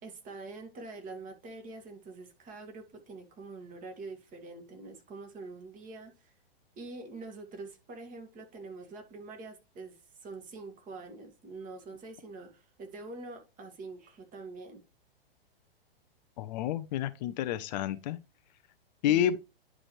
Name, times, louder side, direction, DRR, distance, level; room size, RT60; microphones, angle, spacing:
voice 1, 0.0-6.3 6.8-14.8 19.1-19.4, right 3 dB, 25° right, 2.2 m, -45 dB
voice 2, 16.4-18.2 19.0-19.4, left 11 dB, 45° left, 0.7 m, -29 dB
10.5 x 4.9 x 3.2 m
hypercardioid pair, 120°, 30 cm